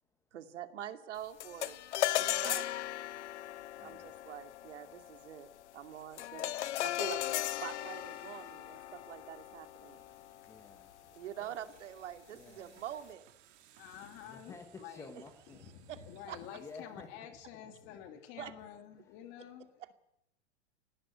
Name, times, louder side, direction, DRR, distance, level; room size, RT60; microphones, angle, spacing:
voice 1, 0.3-1.8 2.2-2.7 3.8-6.5 6.8-7.3 7.6-10.0 11.2-13.3 15.9-16.0 16.3-16.4 18.4-18.5, right 10 dB, 80° right, 2.6 m, -45 dB
sound 1, 1.4-10.9, left 13 dB, 70° left, 1.0 m, -37 dB
voice 2, 2.2-2.6 3.8-4.1 10.5-11.0 11.4-11.6 12.3-12.8 13.7-13.8 14.2-15.6 16.5-17.1, left 4 dB, 10° left, 1.0 m, -52 dB
sound 2, 6.9-16.8, right 11 dB, 30° right, 3.0 m, -65 dB
voice 3, 13.7-15.1 15.5-19.7, left 9 dB, 30° left, 2.9 m, -49 dB
18.0 x 17.5 x 9.4 m
supercardioid pair, 170°, 36 cm